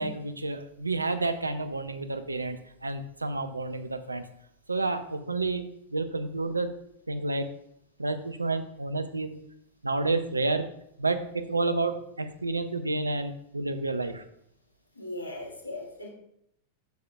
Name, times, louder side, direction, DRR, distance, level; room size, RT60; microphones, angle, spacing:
voice 1, 0.0-4.2 4.7-6.8 7.1-7.5 8.0-9.3 9.8-10.7 11.0-14.2, right 3 dB, 80° right, 10 dB, 0.5 m, -30 dB
voice 2, 15.0-16.1, left 2 dB, 75° left, 0 dB, 1.7 m, -38 dB
9.1 x 6.6 x 2.4 m, 0.74 s
figure-of-eight pair, 90°, 0 cm